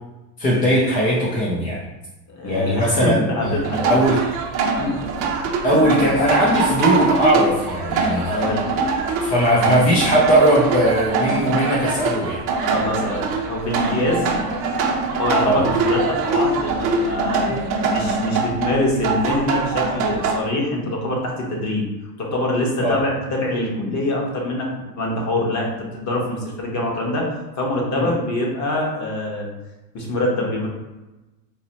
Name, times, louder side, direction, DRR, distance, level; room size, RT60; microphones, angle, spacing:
voice 1, 0.4-1.8 2.4-3.6 3.8-4.3 5.6-8.3 9.2-12.4 15.4-15.6 22.8-23.0 27.9-28.1, equal, 20° left, -5 dB, 0.4 m, -19 dB
voice 2, 2.3-4.2 4.8-4.9 5.7-5.8 8.2-8.7 12.6-14.3 15.2-17.5 17.9-21.9 22.2-27.3 27.6-29.5 29.9-30.7, left 1 dB, 35° left, -1 dB, 1.1 m, -24 dB
sound 1, 3.4-20.4, right 4 dB, 40° right, 0.8 m, -23 dB
4.1 x 2.8 x 2.8 m, 1.0 s
supercardioid pair, 125°, 50 cm